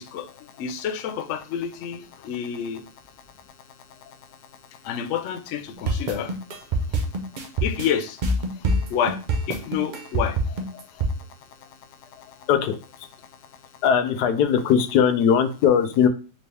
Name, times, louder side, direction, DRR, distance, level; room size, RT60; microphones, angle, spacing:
voice 1, 0.6-2.8 4.8-6.3 7.6-8.2 8.9-9.2 9.5-10.4 10.7-10.8, left 8 dB, 70° left, 0.7 m, -28 dB
sound 1, 5.9-11.1, right 2 dB, 60° right, 0.5 m, -24 dB
voice 2, 13.8-16.1, left 8 dB, 90° left, 1.1 m, -19 dB
4.4 x 2.7 x 3.2 m
omnidirectional pair, 1.7 m